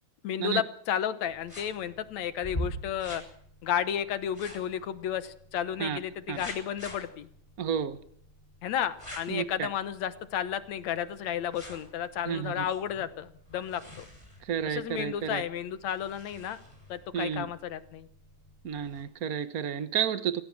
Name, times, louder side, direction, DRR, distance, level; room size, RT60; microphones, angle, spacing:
voice 1, 0.2-3.2 3.6-7.3 8.6-14.1 14.7-16.6 16.9-18.1, left 9 dB, 70° left, 2.3 m, -32 dB
sound 1, 1.3-19.0, equal, 10° left, 7.0 m, -46 dB
voice 2, 7.6-8.0 9.3-9.7 12.3-12.6 14.5-15.4 17.1-17.5 18.6-20.4, right 8 dB, 60° right, 0.9 m, -31 dB
26.0 x 16.5 x 7.5 m
omnidirectional pair, 3.5 m